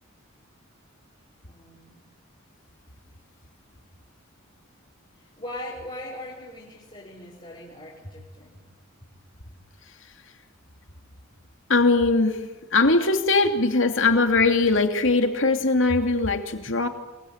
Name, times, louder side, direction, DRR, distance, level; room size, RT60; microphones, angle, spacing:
voice 1, 1.4-2.0 5.2-8.5 16.7-16.8, left 1 dB, 30° left, -4 dB, 6.3 m, -40 dB
voice 2, 11.7-12.4 12.7-16.9, left 3 dB, 65° left, 6 dB, 2.7 m, -20 dB
27.5 x 23.5 x 8.8 m, 1.1 s
head